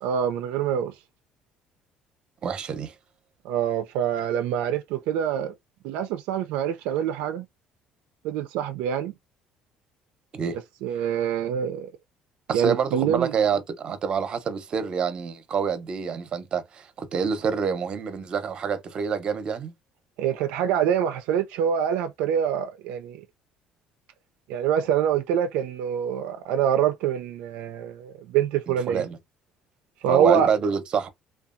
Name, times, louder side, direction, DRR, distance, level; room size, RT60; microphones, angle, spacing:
voice 1, 0.0-0.9 3.4-5.5 5.8-7.4 8.2-9.1 10.5-11.9 12.5-13.3 20.2-23.2 24.5-29.0 30.0-30.5, right 9 dB, 90° right, 0.3 m, -25 dB
voice 2, 2.4-2.9 10.3-10.6 12.5-19.7 28.7-29.2 30.1-31.1, right 6 dB, 40° right, 0.6 m, -27 dB
2.7 x 2.3 x 2.4 m
cardioid pair, 125°, 2 cm